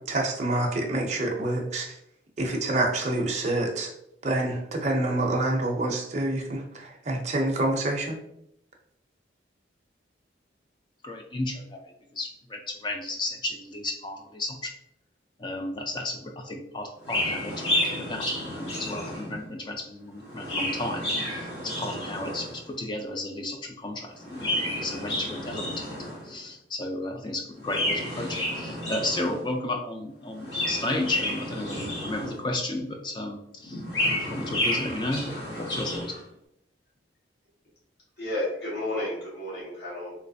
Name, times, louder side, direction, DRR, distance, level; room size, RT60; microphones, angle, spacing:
voice 1, 0.0-1.9 2.4-3.9 4.2-8.2, right 2 dB, 40° right, 0 dB, 0.5 m, -27 dB
voice 2, 11.0-11.8 12.1-14.7 15.4-25.9 26.2-33.8 34.3-36.1, left 1 dB, 25° left, 3 dB, 0.4 m, -33 dB
Chirp tweet, 17.0-19.5 20.2-22.6 24.2-26.4 27.6-29.5 30.3-32.6 33.6-36.2, left 1 dB, 80° left, 1.4 m, -31 dB
voice 3, 38.2-40.2, left 1 dB, 65° left, -6 dB, 1.4 m, -32 dB
3.2 x 3.0 x 2.6 m, 0.77 s
head